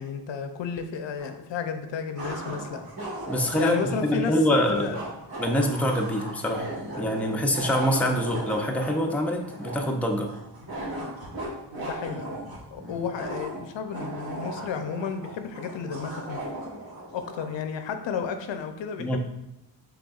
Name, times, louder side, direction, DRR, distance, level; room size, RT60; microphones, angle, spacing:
voice 1, 0.0-2.8 3.6-5.0 11.8-12.3 12.7-16.4 17.1-19.2, left 6 dB, 85° left, 7 dB, 0.6 m, -32 dB
sound 1, 1.2-1.3 2.1-17.5, right 1 dB, 55° right, 1.4 m, -37 dB
voice 2, 3.3-4.9 5.4-6.7 7.0-10.3 19.0-19.2, equal, 5° left, 2 dB, 0.4 m, -25 dB
6.0 x 3.5 x 2.4 m, 0.88 s
wide cardioid pair, 90°, 43 cm